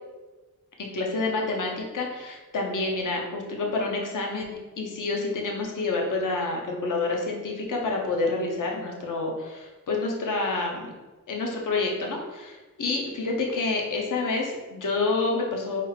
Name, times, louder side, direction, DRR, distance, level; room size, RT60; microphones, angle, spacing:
voice 1, 0.8-10.9 11.3-15.8, left 3 dB, 70° left, 0 dB, 0.8 m, -28 dB
4.1 x 2.4 x 3.3 m, 1.2 s
wide cardioid pair, 80°, 33 cm